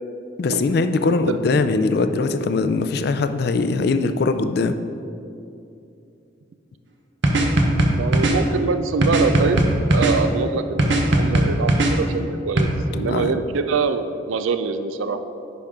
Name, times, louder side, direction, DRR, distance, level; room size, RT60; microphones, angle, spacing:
voice 1, 0.4-4.8 12.9-13.3, left 3 dB, 55° left, 9 dB, 0.3 m, -21 dB
sound 1, 7.2-8.4 9.0-10.2 10.8-11.9 12.6-12.7, right 1 dB, 65° right, 0.8 m, -17 dB
voice 2, 7.9-9.7 9.9-15.2, right 5 dB, 90° right, 9 dB, 0.4 m, -24 dB
10.0 x 5.2 x 3.6 m, 2.6 s
head